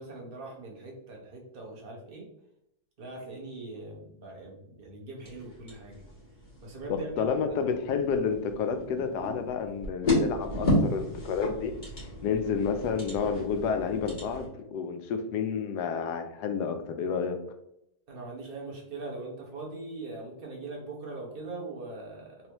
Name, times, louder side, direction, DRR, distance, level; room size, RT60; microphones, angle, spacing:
voice 1, 0.0-2.3 3.0-6.0 6.6-7.3 18.1-22.5, right 2 dB, 40° right, -2 dB, 1.0 m, -41 dB
sound 1, 5.2-14.5, left 1 dB, 30° left, 1.6 m, -33 dB
voice 2, 6.9-11.7 12.2-17.4, left 6 dB, 85° left, 7 dB, 1.1 m, -30 dB
3.5 x 3.2 x 2.9 m, 0.80 s
omnidirectional pair, 1.7 m